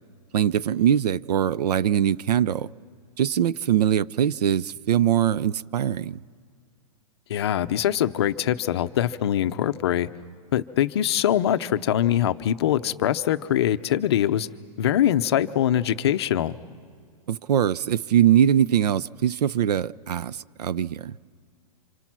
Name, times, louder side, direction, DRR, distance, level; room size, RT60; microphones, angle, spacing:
voice 1, 0.3-2.7 3.2-6.2 17.3-21.2, right 10 dB, 85° right, 0.6 m, -22 dB
voice 2, 7.3-10.1 10.5-14.5 14.8-16.6, left 11 dB, 40° left, 0.6 m, -23 dB
29.0 x 26.5 x 6.1 m
supercardioid pair, 180°, 20 cm